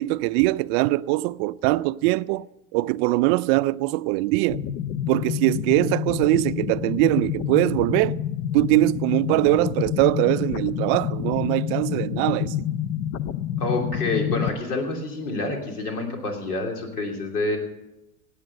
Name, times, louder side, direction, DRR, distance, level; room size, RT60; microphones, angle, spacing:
voice 1, 0.0-2.5 2.7-4.6 5.1-8.2 8.5-12.5, right 19 dB, 45° right, 0.4 m, -22 dB
sound 1, 4.5-14.5, left 10 dB, 55° left, 0.9 m, -28 dB
voice 2, 13.6-17.6, left 2 dB, 80° left, 3.1 m, -27 dB
17.5 x 8.4 x 6.6 m
hypercardioid pair, 85°, 45 cm